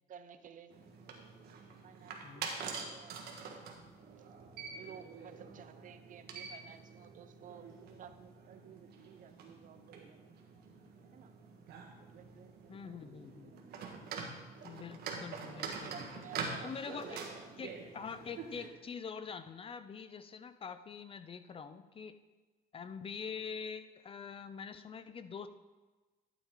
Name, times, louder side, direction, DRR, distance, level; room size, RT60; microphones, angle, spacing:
voice 1, 0.1-0.7 1.8-3.3 3.6-4.3 4.8-7.7 8.0-10.3 11.1-11.3 11.8-13.1 13.3-14.7 15.4-16.7 17.0-17.6, right 8 dB, 50° right, 10 dB, 0.7 m, -55 dB
sound 1, 0.7-18.7, right 5 dB, 70° right, 1.5 m, -46 dB
voice 2, 12.7-13.5 14.6-16.0 16.6-17.2 17.6-22.2 22.7-25.5, left 6 dB, 35° left, 12 dB, 0.5 m, -45 dB
12.0 x 7.3 x 3.8 m, 1.2 s
cardioid pair, 110°, 17 cm